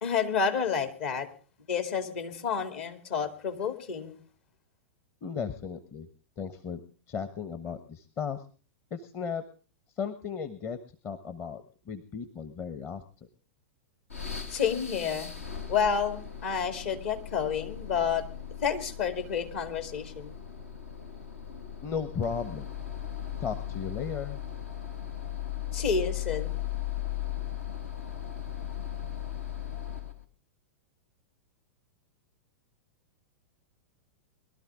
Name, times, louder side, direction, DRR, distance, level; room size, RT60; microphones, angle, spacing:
voice 1, 0.0-1.3 1.7-4.2 14.5-15.3 15.7-18.3 18.6-20.4 25.7-26.6, left 6 dB, 60° left, 7 dB, 2.5 m, -30 dB
voice 2, 5.2-6.1 6.4-6.8 7.1-8.4 8.9-9.4 9.9-10.8 11.0-13.3 21.8-22.7 23.4-24.4, left 6 dB, 35° left, 11 dB, 1.1 m, -35 dB
sound 1, 14.1-30.2, left 10 dB, 80° left, 1.8 m, -37 dB
22.0 x 12.5 x 3.6 m, 0.38 s
figure-of-eight pair, 100°, 7 cm